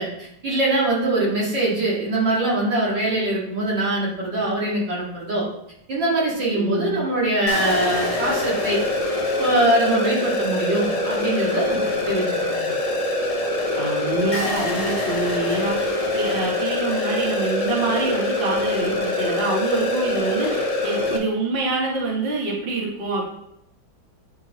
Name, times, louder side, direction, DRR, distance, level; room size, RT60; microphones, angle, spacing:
voice 1, 0.0-5.5 5.9-8.8 9.4-12.7, right 2 dB, 70° right, -5 dB, 2.7 m, -23 dB
voice 2, 6.5-7.0 13.7-23.2, right 3 dB, 35° right, -2 dB, 1.2 m, -26 dB
sound 1, 7.5-21.2, left 2 dB, 55° left, 0.4 m, -24 dB
9.3 x 4.6 x 3.0 m, 0.78 s
omnidirectional pair, 2.0 m